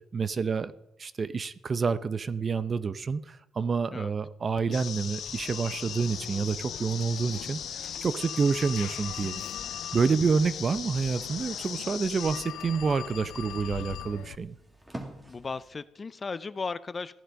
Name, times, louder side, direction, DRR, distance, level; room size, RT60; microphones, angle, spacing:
voice 1, 0.1-0.7 1.0-7.6 8.0-9.4 9.9-14.6, right 5 dB, 40° right, 0.7 m, -28 dB
Telephone, 4.6-14.4, left 12 dB, 85° left, 0.5 m, -43 dB
sound 1, 4.6-15.8 16.1-16.2, right 1 dB, 15° right, 2.4 m, -51 dB
sound 2, 4.7-12.4, left 8 dB, 65° left, 0.9 m, -38 dB
voice 2, 15.2-17.2, left 4 dB, 35° left, 0.6 m, -36 dB
15.5 x 10.0 x 5.3 m
cardioid pair, 90°, 0 cm